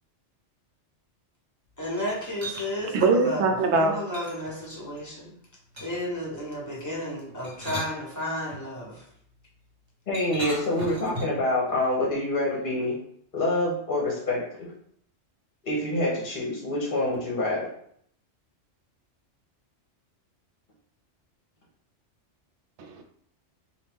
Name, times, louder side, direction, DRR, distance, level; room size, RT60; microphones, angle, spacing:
voice 1, 1.8-5.3 5.8-9.1, left 1 dB, 15° left, -5 dB, 1.2 m, -33 dB
sound 1, 2.0-2.7 4.1-5.1 5.8-6.2 7.3-8.6 10.1-11.5, right 1 dB, 40° right, 1.2 m, -38 dB
voice 2, 2.9-4.0 22.8-23.0, right 3 dB, 75° right, 5 dB, 0.9 m, -22 dB
voice 3, 10.1-13.0 13.3-14.7 15.6-17.7, left 1 dB, 50° left, -4 dB, 1.0 m, -26 dB
4.1 x 2.4 x 3.5 m, 0.66 s
omnidirectional pair, 1.2 m